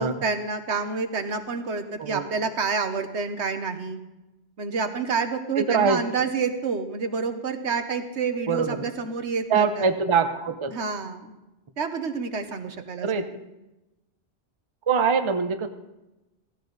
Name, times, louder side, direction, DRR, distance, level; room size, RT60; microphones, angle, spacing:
voice 1, 0.0-4.0 4.6-9.9 10.7-11.3 11.8-13.3, right 5 dB, 75° right, 8 dB, 1.4 m, -28 dB
voice 2, 5.6-6.0 8.5-8.9 9.5-10.7 13.0-13.3 14.9-15.7, right 5 dB, 30° right, 8 dB, 0.7 m, -23 dB
15.5 x 15.5 x 4.0 m, 1.0 s
omnidirectional pair, 1.2 m